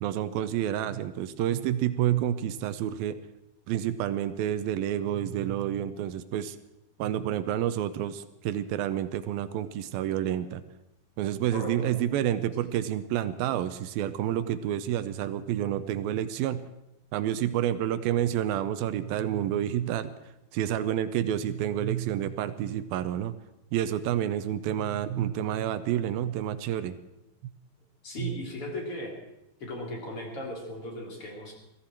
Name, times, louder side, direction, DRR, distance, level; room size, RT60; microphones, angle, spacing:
voice 1, 0.0-3.2 3.7-6.6 7.0-10.6 11.2-16.6 17.1-20.1 20.5-23.4 23.7-27.0 28.2-28.3, right 11 dB, 80° right, 12 dB, 2.4 m, -29 dB
voice 2, 11.5-11.9 28.0-29.1 29.6-31.5, left 1 dB, 35° left, 0 dB, 4.0 m, -37 dB
22.0 x 14.5 x 4.5 m, 0.89 s
omnidirectional pair, 4.5 m